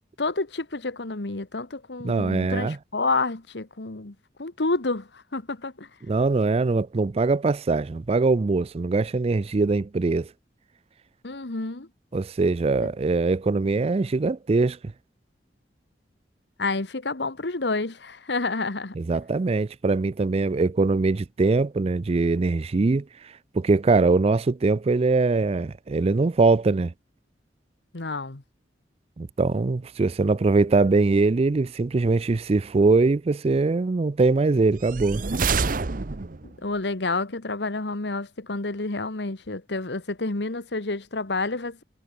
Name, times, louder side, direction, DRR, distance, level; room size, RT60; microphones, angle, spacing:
voice 1, 0.2-5.9 11.2-11.9 12.8-12.9 16.6-18.9 27.9-28.4 36.6-41.8, left 3 dB, 70° left, 1.5 m, -29 dB
voice 2, 2.0-2.8 6.1-10.3 12.1-14.8 19.0-26.9 29.2-35.2, right 3 dB, 35° right, 0.4 m, -22 dB
sound 1, 34.8-36.6, right 4 dB, 50° right, 0.9 m, -27 dB
head